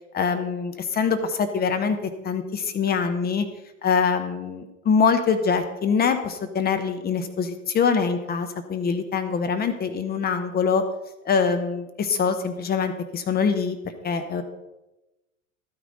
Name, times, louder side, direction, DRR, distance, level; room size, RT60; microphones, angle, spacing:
voice 1, 0.1-3.4 3.8-10.8 11.2-13.8 14.0-14.4, left 6 dB, 20° left, 8 dB, 0.9 m, -24 dB
12.0 x 9.2 x 3.9 m, 1.0 s
figure-of-eight pair, 90°, 42 cm